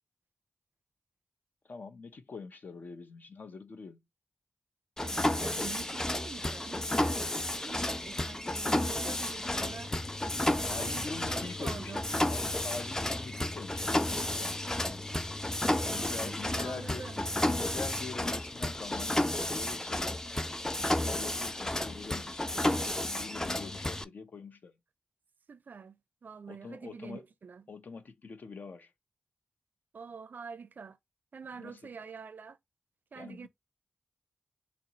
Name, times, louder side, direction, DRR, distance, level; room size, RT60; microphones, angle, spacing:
voice 1, 1.7-4.0 10.6-11.9 12.3-14.6 14.9-15.1 15.7-17.1 17.5-20.3 20.8-24.7 26.5-27.2 27.7-28.9 31.6-31.8 33.2-33.5, left 4 dB, 70° left, 0.6 m, -44 dB
Mechanisms, 5.0-24.0, left 1 dB, 15° left, 0.4 m, -32 dB
voice 2, 5.0-9.9 10.6-12.0 15.6-17.3 25.5-27.6 29.9-31.0 31.3-32.6 33.1-33.5, right 5 dB, 65° right, 0.4 m, -46 dB
4.2 x 2.0 x 3.8 m
cardioid pair, 40°, 3 cm